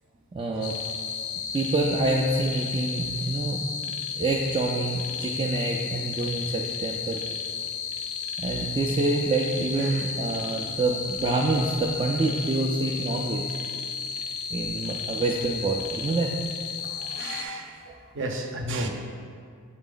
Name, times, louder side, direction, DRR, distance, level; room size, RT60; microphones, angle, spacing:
voice 1, 0.3-0.7 1.5-3.6 4.2-7.2 8.4-13.6 14.5-16.3 16.8-17.2, right 2 dB, 25° right, -2 dB, 0.3 m, -27 dB
sound 1, 0.6-17.4, left 6 dB, 75° left, 0.4 m, -33 dB
voice 2, 17.0-17.8 18.1-18.9, right 1 dB, 55° right, 3 dB, 0.6 m, -33 dB
7.3 x 4.0 x 3.8 m, 2.3 s
head